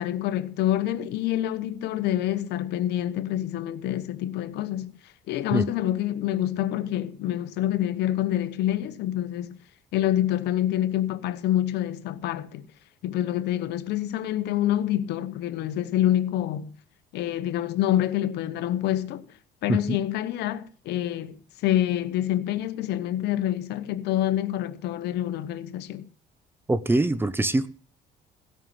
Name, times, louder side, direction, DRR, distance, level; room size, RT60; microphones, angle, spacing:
voice 1, 0.0-4.9 5.3-9.6 9.9-12.6 13.0-16.7 17.1-19.2 19.6-21.4 21.6-26.1, left 12 dB, 80° left, 0.9 m, -27 dB
voice 2, 26.7-27.7, right 2 dB, 15° right, 0.7 m, -23 dB
16.0 x 5.5 x 6.9 m
cardioid pair, 110°, 17 cm